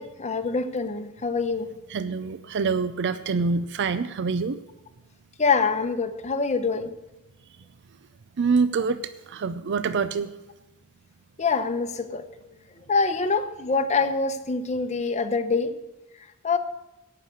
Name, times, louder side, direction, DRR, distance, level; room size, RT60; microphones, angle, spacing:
voice 1, 0.0-1.7 5.4-6.9 11.4-12.2 12.9-15.7 16.4-16.6, left 4 dB, 30° left, 8 dB, 0.8 m, -25 dB
voice 2, 1.9-4.6 8.4-10.3, right 4 dB, 55° right, 13 dB, 0.5 m, -26 dB
17.5 x 5.8 x 6.5 m, 0.99 s
head